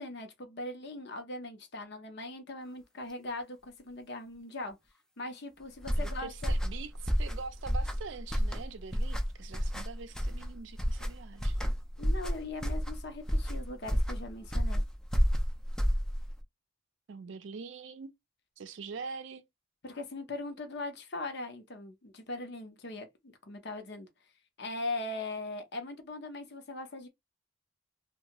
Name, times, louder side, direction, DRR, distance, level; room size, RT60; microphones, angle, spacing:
voice 1, 0.0-4.8 5.2-6.5 12.0-14.8 19.8-24.1 24.6-27.1, left 2 dB, 60° left, 0.8 m, -40 dB
sound 1, 5.8-16.4, equal, 5° left, 0.4 m, -30 dB
voice 2, 6.0-11.6 17.1-18.1 18.6-19.4, right 4 dB, 70° right, 0.4 m, -44 dB
2.6 x 2.3 x 2.9 m
head